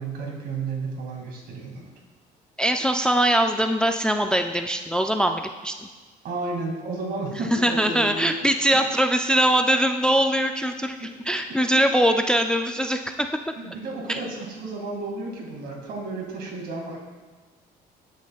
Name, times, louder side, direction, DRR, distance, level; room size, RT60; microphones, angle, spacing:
voice 1, 0.0-1.9 6.2-8.3 11.0-11.4 13.6-17.0, right 3 dB, 65° right, -1 dB, 2.2 m, -32 dB
voice 2, 2.6-5.9 7.3-13.5 14.1-14.2, right 1 dB, 5° left, 6 dB, 0.3 m, -22 dB
13.5 x 6.4 x 2.3 m, 1.4 s
cardioid pair, 110°, 17 cm